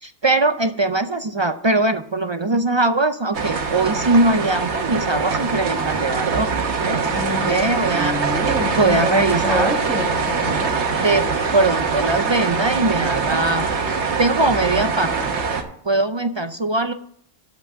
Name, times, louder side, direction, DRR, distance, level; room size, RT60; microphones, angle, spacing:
voice 1, 0.0-6.5 6.8-7.0 7.4-8.1 8.8-9.7 10.9-11.3 11.5-13.7 14.2-15.4 15.8-16.9, right 2 dB, 45° right, 9 dB, 0.3 m, -21 dB
sound 1, 3.3-15.6, right 5 dB, 85° right, 1.4 m, -23 dB
voice 2, 7.1-10.8, left 1 dB, ahead, -5 dB, 2.0 m, -28 dB
7.6 x 5.9 x 7.8 m, 0.64 s
omnidirectional pair, 1.1 m